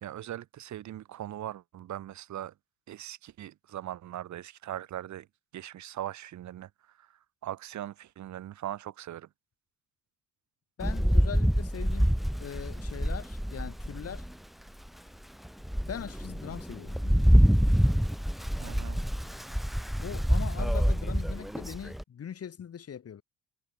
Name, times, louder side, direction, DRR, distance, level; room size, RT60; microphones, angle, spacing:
voice 1, 0.0-2.5 2.9-5.3 5.5-6.7 7.0-9.3 18.6-19.0, right 12 dB, 70° right, 1.6 m, -40 dB
voice 2, 10.8-14.3 15.8-17.4 20.0-23.2, left 8 dB, 50° left, 3.1 m, -41 dB
Rain, 10.8-14.3 14.9-15.0 15.4-22.0, equal, ahead, 0.4 m, -26 dB
cardioid pair, 90°, 30 cm